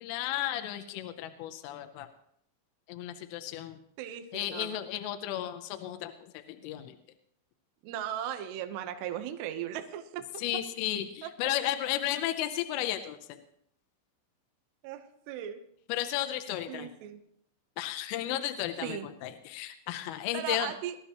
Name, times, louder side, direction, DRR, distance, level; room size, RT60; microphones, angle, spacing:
voice 1, 0.0-2.1 2.9-3.8 4.3-7.0 10.4-13.4 15.9-16.9 17.8-20.7, left 12 dB, 80° left, 7 dB, 3.1 m, -34 dB
voice 2, 4.0-4.7 7.8-10.2 11.2-11.3 14.8-15.6 16.7-17.2 18.8-19.1 20.3-21.0, right 10 dB, 75° right, 7 dB, 2.7 m, -37 dB
21.0 x 13.0 x 3.0 m, 0.71 s
omnidirectional pair, 5.9 m